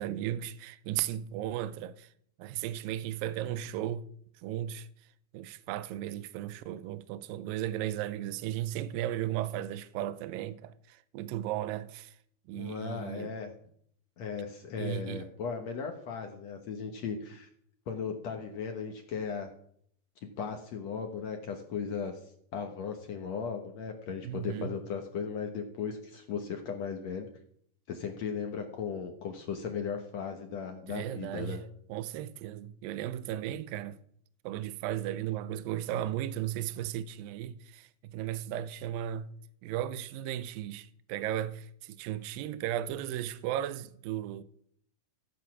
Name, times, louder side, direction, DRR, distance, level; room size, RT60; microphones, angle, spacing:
voice 1, 0.0-2.1 2.4-4.1 4.4-4.9 5.3-12.2 12.5-13.3 14.8-15.3 24.2-24.8 30.9-31.6 31.9-34.0 34.4-39.4 39.6-44.4, right 12 dB, 80° right, 2.3 m, -35 dB
voice 2, 12.5-13.5 14.2-17.5 17.9-19.5 20.2-22.1 22.5-27.3 27.9-31.6, left 6 dB, 60° left, 1.9 m, -37 dB
15.5 x 8.4 x 6.1 m
omnidirectional pair, 4.4 m